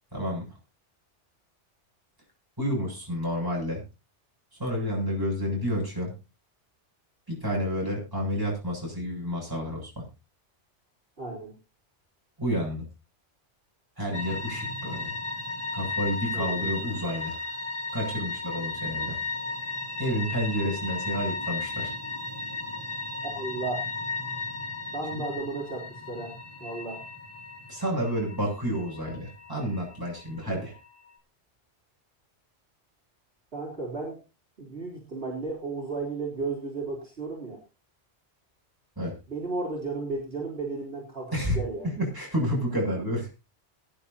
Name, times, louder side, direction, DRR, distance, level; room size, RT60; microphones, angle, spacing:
voice 1, 0.1-0.4 2.6-3.8 4.5-6.1 7.3-10.0 12.4-12.8 14.0-15.1 15.7-17.3 17.9-19.2 20.0-21.9 25.1-25.2 27.7-30.8 39.0-39.1 41.3-41.6 41.8-43.3, equal, 20° right, -2 dB, 7.7 m, -30 dB
voice 2, 11.2-11.5 16.3-16.5 23.2-23.9 24.9-27.0 33.5-34.2 34.6-37.6 39.3-41.9, right 3 dB, 55° right, -3 dB, 3.8 m, -34 dB
sound 1, 14.1-31.1, left 3 dB, 25° left, 3.5 m, -35 dB
22.0 x 10.5 x 2.8 m, 0.28 s
omnidirectional pair, 1.2 m